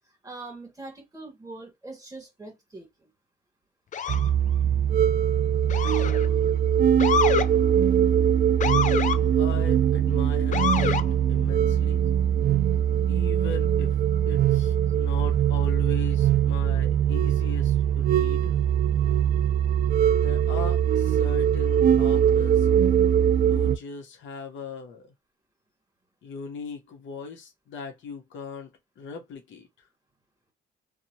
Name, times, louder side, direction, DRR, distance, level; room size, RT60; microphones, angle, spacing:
voice 1, 0.2-3.1, right 2 dB, 15° right, 1.7 m, -42 dB
Motor vehicle (road) / Siren, 3.9-4.3 5.7-6.3 7.0-7.5 8.6-9.2 10.5-11.1, left 7 dB, 40° left, 0.4 m, -26 dB
sound 1, 4.1-23.8, right 9 dB, 45° right, 0.4 m, -22 dB
voice 2, 9.4-11.0 11.3-12.0 13.1-14.0 14.3-18.6 20.2-22.7 23.5-25.1 26.2-29.7, left 4 dB, 70° left, 1.0 m, -39 dB
2.8 x 2.3 x 2.7 m
cardioid pair, 90°, 20 cm